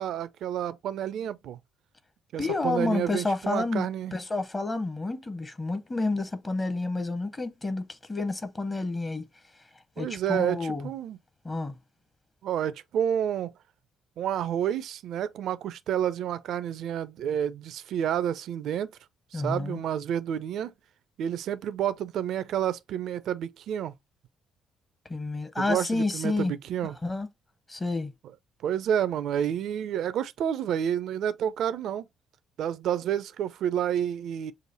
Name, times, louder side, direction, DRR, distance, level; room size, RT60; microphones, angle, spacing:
voice 1, 0.0-1.6 2.3-4.1 10.0-10.6 10.8-11.2 12.4-13.5 14.2-18.9 19.3-20.7 21.2-23.9 25.6-27.0 28.6-32.1 32.6-34.5, right 9 dB, 55° right, 0.4 m, -29 dB
voice 2, 2.4-9.2 10.0-10.9 11.4-11.7 19.3-19.8 25.1-26.5 27.0-27.3 27.7-28.1, left 3 dB, 25° left, 0.9 m, -29 dB
6.2 x 2.5 x 2.7 m
figure-of-eight pair, 45°, 0 cm